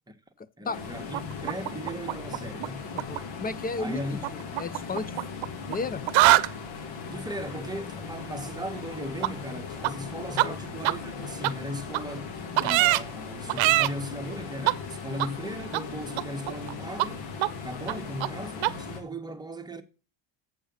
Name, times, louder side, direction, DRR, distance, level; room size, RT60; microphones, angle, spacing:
voice 1, 0.6-2.9 3.8-4.3 7.1-17.3 17.6-19.8, equal, 10° right, 1.3 m, -37 dB
sound 1, 0.7-19.0, left 5 dB, 75° left, 2.3 m, -39 dB
sound 2, 1.1-2.7 2.9-3.2 4.2-5.8 6.0-6.5 9.2-9.3 9.8-9.9 10.4-10.5 10.8-10.9 11.4-11.5 11.9-12.0 12.6-13.0 13.5-13.9 14.6-14.7 15.2-15.3 15.7-15.8 16.1-16.7 17.0-17.1 17.4-17.5 17.9-18.0 18.2-18.3 18.6-18.7, right 18 dB, 80° right, 0.7 m, -23 dB
voice 2, 2.9-4.2 4.6-5.1 5.7-6.0 10.3-10.6, left 4 dB, 20° left, 0.5 m, -33 dB
8.0 x 5.5 x 6.9 m
cardioid pair, 100°, 45 cm